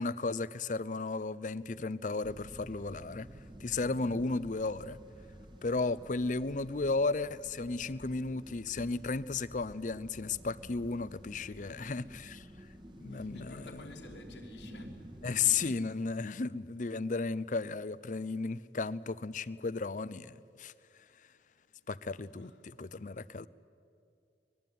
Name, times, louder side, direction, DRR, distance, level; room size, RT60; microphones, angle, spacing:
voice 1, 0.0-3.3 3.6-5.0 5.6-12.5 13.0-13.6 15.2-20.7 21.9-23.5, left 4 dB, 45° left, 0.6 m, -34 dB
sound 1, 2.2-15.8, equal, 25° right, 1.4 m, -51 dB
voice 2, 11.6-12.2 13.1-15.0 15.9-16.0 22.3-22.6, left 2 dB, 85° left, 3.5 m, -53 dB
24.5 x 20.5 x 9.3 m
head